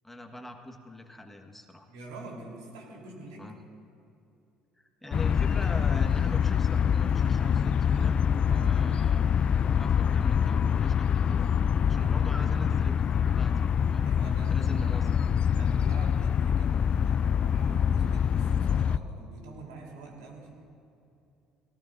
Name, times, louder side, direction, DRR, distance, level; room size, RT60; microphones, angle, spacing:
voice 1, 0.0-1.9 3.4-3.6 4.8-8.2 8.4-9.3 9.8-11.5 11.9-14.1 14.5-15.2, left 1 dB, 10° left, 4 dB, 1.4 m, -42 dB
voice 2, 1.9-3.5 8.4-9.2 10.1-10.3 11.7-12.2 14.0-15.1 15.6-20.5, right 2 dB, 85° right, -2 dB, 3.5 m, -46 dB
sound 1, 5.1-19.0, left 7 dB, 45° left, 0.3 m, -25 dB
20.0 x 18.0 x 2.6 m, 2.6 s
hypercardioid pair, 65°, 3 cm